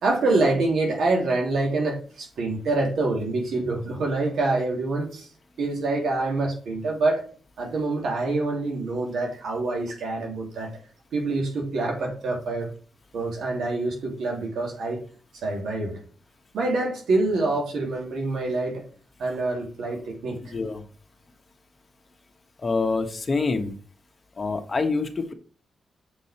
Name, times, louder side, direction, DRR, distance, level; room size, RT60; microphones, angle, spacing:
voice 1, 0.0-5.3 5.6-7.2 7.6-10.7 11.1-12.7 13.1-15.0 15.3-16.0 16.5-18.8 19.2-20.5, right 2 dB, 80° right, 0 dB, 3.0 m, -26 dB
voice 2, 20.4-20.8 22.6-23.7 24.4-25.3, left 4 dB, 35° left, 6 dB, 1.4 m, -26 dB
7.6 x 5.3 x 4.3 m, 0.40 s
cardioid pair, 80°, 0 cm